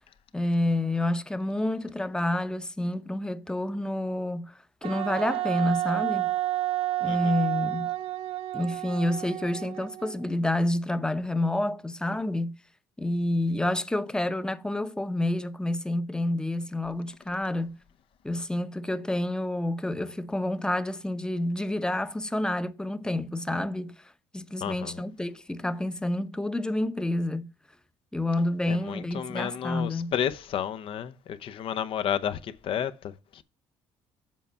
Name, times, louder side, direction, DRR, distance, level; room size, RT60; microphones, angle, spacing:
voice 1, 0.3-4.5 4.8-6.3 7.0-7.9 8.5-12.6 13.0-17.8 18.2-24.0 24.3-27.5 28.1-30.1, left 1 dB, 10° left, 0.7 m, -29 dB
Wind instrument woodwind instrument, 4.8-10.3, right 15 dB, 70° right, 0.4 m, -30 dB
voice 2, 24.6-25.0 28.7-33.4, left 9 dB, 60° left, 0.7 m, -32 dB
7.5 x 4.3 x 5.5 m
supercardioid pair, 80°, 10 cm